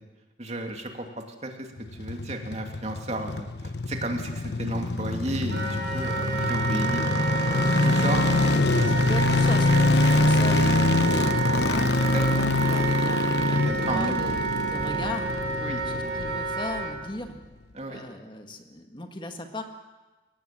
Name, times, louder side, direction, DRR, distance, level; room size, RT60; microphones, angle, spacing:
voice 1, 0.4-9.0 10.5-11.1 11.9-12.3 13.5-14.4 15.6-15.8 17.7-18.0, right 1 dB, 40° right, 3 dB, 2.7 m, -34 dB
sound 1, 1.8-17.0 17.3-17.4, left 2 dB, 70° left, 1.0 m, -25 dB
Wind instrument woodwind instrument, 5.5-16.9, right 4 dB, 65° right, 5.2 m, -29 dB
voice 2, 8.8-11.9 12.2-15.3 15.9-17.3 17.8-19.6, left 1 dB, 25° left, 5 dB, 1.8 m, -37 dB
24.0 x 18.0 x 7.7 m, 1.2 s
head